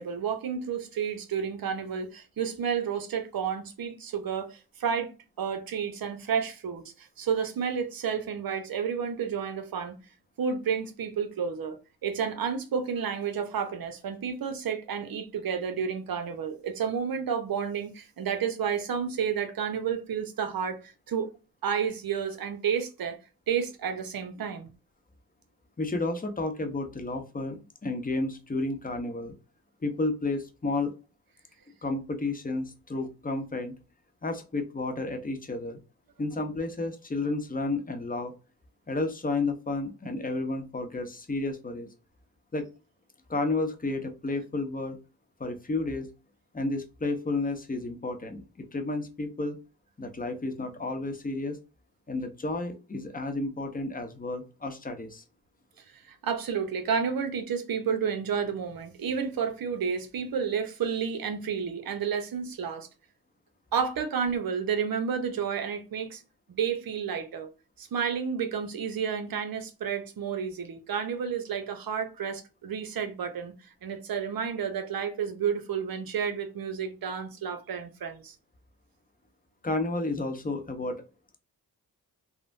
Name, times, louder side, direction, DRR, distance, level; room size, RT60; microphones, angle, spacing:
voice 1, 0.0-5.1 5.4-10.0 10.4-21.3 21.6-23.2 23.5-24.7 55.9-62.9 63.7-66.2 66.5-67.5 67.8-73.5 73.8-78.3, right 7 dB, 65° right, 0.8 m, -31 dB
voice 2, 25.8-29.3 29.8-30.9 31.8-33.7 34.2-35.8 36.2-38.3 38.9-41.9 42.5-42.7 43.3-45.0 45.4-46.1 46.5-49.6 50.0-51.6 52.1-55.2 79.6-81.0, left 2 dB, 20° left, 0.8 m, -31 dB
3.3 x 2.1 x 2.5 m
cardioid pair, 50°, 39 cm